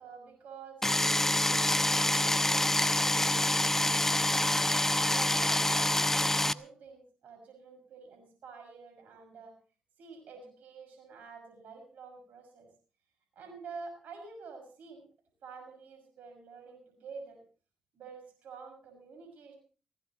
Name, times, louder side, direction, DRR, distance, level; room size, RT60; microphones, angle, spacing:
voice 1, 0.0-4.4 5.1-9.5 10.0-12.7 13.3-15.0 15.4-17.4 17.9-19.5, right 5 dB, 70° right, 4 dB, 6.1 m, -48 dB
sound 1, 0.8-6.5, left 1 dB, 10° left, 0.9 m, -26 dB
20.5 x 17.5 x 3.0 m, 0.38 s
supercardioid pair, 50°, 3 cm